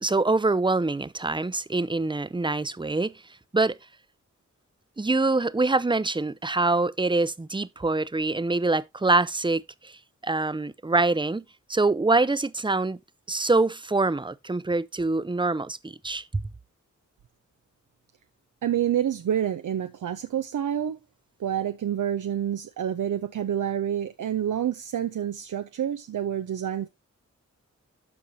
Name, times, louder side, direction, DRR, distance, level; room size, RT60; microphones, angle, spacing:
voice 1, 0.0-3.2 3.5-3.8 5.0-9.9 10.2-11.4 11.7-13.0 13.3-16.4, right 3 dB, 15° right, 0.6 m, -25 dB
voice 2, 18.6-21.0 21.4-26.9, right 10 dB, 80° right, 0.6 m, -28 dB
13.0 x 4.8 x 2.7 m
cardioid pair, 45°, 30 cm